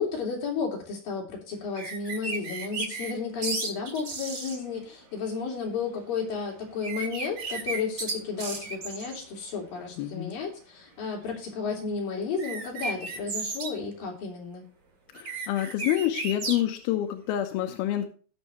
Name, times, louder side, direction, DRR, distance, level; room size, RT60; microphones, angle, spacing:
voice 1, 0.0-14.6, left 5 dB, 65° left, -2 dB, 5.0 m, -33 dB
sound 1, 1.7-3.1 3.4-4.6 6.8-9.2 12.4-13.7 15.1-16.6, right 3 dB, 35° right, 2.4 m, -34 dB
voice 2, 10.0-10.3 15.1-18.1, left 12 dB, 85° left, 5 dB, 2.7 m, -28 dB
18.5 x 6.4 x 3.1 m, 0.40 s
omnidirectional pair, 4.5 m